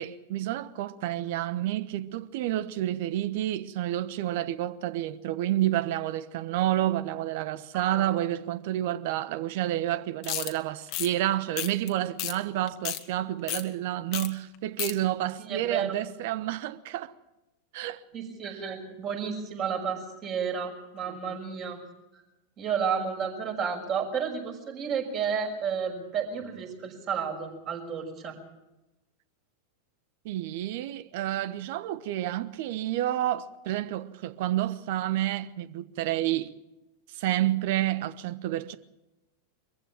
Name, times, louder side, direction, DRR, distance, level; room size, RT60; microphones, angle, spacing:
voice 1, 0.0-17.1 17.7-18.0 21.1-21.4 30.2-36.5 37.1-38.8, right 13 dB, 50° right, 1.2 m, -29 dB
voice 2, 7.7-8.1 15.5-15.9 18.1-21.8 22.1-22.2 22.6-28.3, right 6 dB, 35° right, 6.1 m, -32 dB
sound 1, 10.2-10.5 10.9-11.1 11.6-11.9 12.2-12.3 12.7-13.0 13.5-13.6 14.1-14.3 14.5-14.9, left 15 dB, 40° left, 1.6 m, -31 dB
24.0 x 15.0 x 7.6 m
figure-of-eight pair, 90°, 0 cm